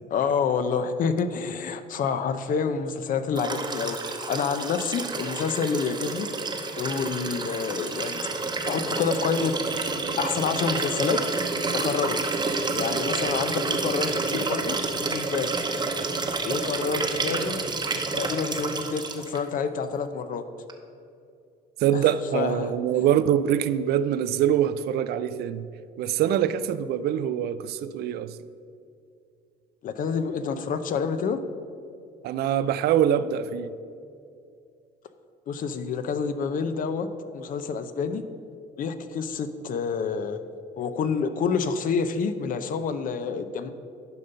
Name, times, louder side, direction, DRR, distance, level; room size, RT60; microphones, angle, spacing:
voice 1, 0.1-4.0 4.3-6.3 6.8-8.3 8.7-9.5 9.8-9.9 10.2-11.2 11.7-12.2 12.7-14.8 15.1-15.5 16.4-17.6 18.1-20.4 22.3-22.7 29.8-31.4 35.5-37.1 37.3-38.2 38.8-40.4 40.8-43.7, left 6 dB, 55° left, 10 dB, 0.7 m, -28 dB
Liquid, 3.3-19.4 20.7-20.8, right 3 dB, 25° right, 0.9 m, -29 dB
voice 2, 21.8-25.7 26.0-28.4 32.2-33.7, right 10 dB, 70° right, 14 dB, 0.4 m, -24 dB
10.5 x 5.2 x 5.5 m, 2.5 s
cardioid pair, 110°, 17 cm